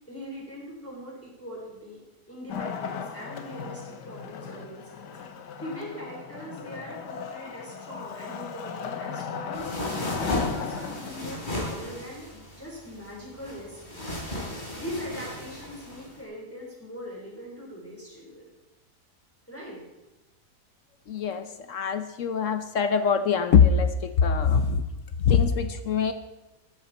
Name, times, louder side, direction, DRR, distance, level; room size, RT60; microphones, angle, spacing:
voice 1, 0.1-2.0 2.3-5.1 5.6-9.7 10.1-14.0 14.5-18.5 19.5-19.8, equal, 10° left, -4 dB, 3.9 m, -41 dB
Wood, 2.5-11.4, left 7 dB, 80° left, 1.7 m, -36 dB
sound 1, 9.5-16.2, left 1 dB, 25° left, 3.7 m, -35 dB
voice 2, 21.1-24.8 25.2-26.1, left 6 dB, 60° left, 10 dB, 1.0 m, -23 dB
13.0 x 13.0 x 4.2 m, 1.0 s
omnidirectional pair, 1.8 m